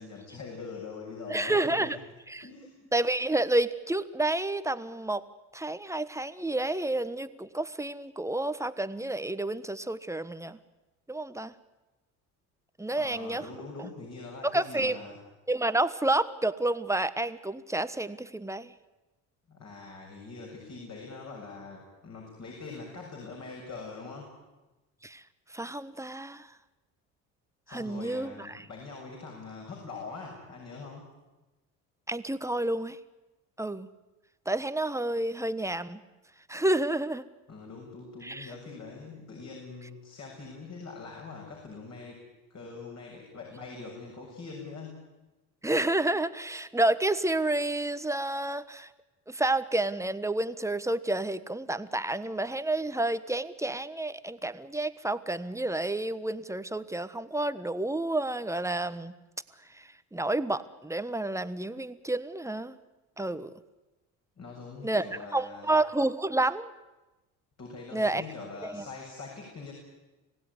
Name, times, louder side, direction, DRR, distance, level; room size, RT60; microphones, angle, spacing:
voice 1, 0.0-2.0 2.4-2.8 12.9-15.2 19.5-24.3 27.7-31.1 37.5-42.2 42.5-45.0 64.4-65.7 67.6-69.7, left 4 dB, 45° left, -1 dB, 7.2 m, -43 dB
voice 2, 1.3-2.0 2.3-2.4 2.9-5.2 5.5-10.6 11.1-11.5 12.8-13.4 14.4-15.0 15.5-18.7 25.0-25.2 25.5-26.5 27.7-28.7 32.1-33.0 33.6-33.9 34.5-36.0 36.5-37.2 38.2-38.5 45.6-48.9 49.3-59.1 59.7-62.8 63.2-63.5 64.8-65.1 65.3-66.7 67.9-68.2 68.6-68.8, right 2 dB, 10° right, 12 dB, 1.3 m, -30 dB
26.0 x 16.5 x 9.9 m, 1.1 s
supercardioid pair, 75°, 37 cm